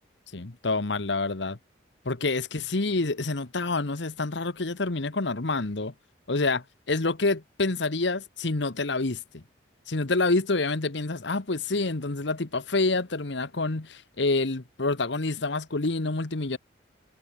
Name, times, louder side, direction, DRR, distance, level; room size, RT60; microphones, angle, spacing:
voice 1, 0.3-1.6 2.0-5.9 6.3-9.4 9.9-16.6, left 3 dB, 70° left, 1.2 m, -27 dB
head